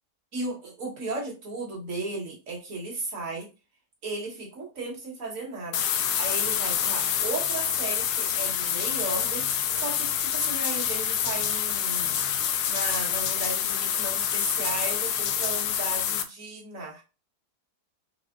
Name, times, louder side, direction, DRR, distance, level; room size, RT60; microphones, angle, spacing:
voice 1, 0.3-3.5 4.0-5.8 6.2-9.5 9.8-12.2 12.7-17.0, right 3 dB, 55° right, -2 dB, 1.9 m, -35 dB
sound 1, 5.7-16.2, left 9 dB, 80° left, 1.1 m, -27 dB
5.8 x 2.0 x 3.8 m, 0.30 s
omnidirectional pair, 1.7 m